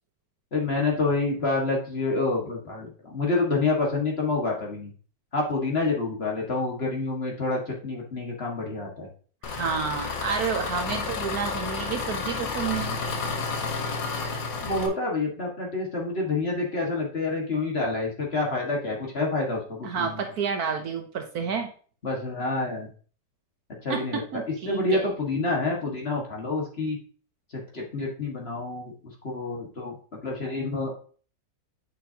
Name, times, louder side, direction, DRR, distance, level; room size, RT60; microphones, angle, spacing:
voice 1, 0.5-4.9 5.3-9.1 10.9-11.1 14.6-20.2 22.0-22.9 23.8-24.2 24.7-27.0 27.5-28.9 29.2-30.9, left 3 dB, 35° left, -1 dB, 1.8 m, -28 dB
Engine, 9.4-14.9, left 4 dB, 85° left, 1.7 m, -31 dB
voice 2, 9.4-13.0 19.8-21.7 23.9-25.1, right 6 dB, 65° right, 5 dB, 1.2 m, -30 dB
8.5 x 6.0 x 2.8 m, 0.42 s
omnidirectional pair, 1.9 m